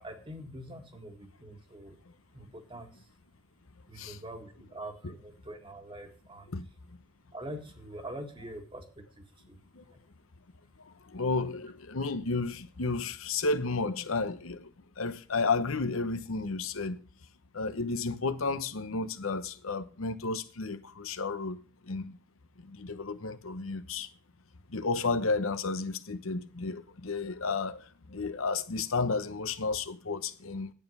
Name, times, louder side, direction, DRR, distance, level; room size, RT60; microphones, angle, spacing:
voice 1, 0.0-2.0 2.3-3.1 3.9-6.5 7.3-9.6 9.9-10.0, right 1 dB, 25° right, 1.8 m, -44 dB
voice 2, 10.8-14.7 15.0-17.0 17.5-22.2 22.6-24.1 24.7-30.7, left 3 dB, 80° left, 1.0 m, -32 dB
10.5 x 9.2 x 5.5 m
head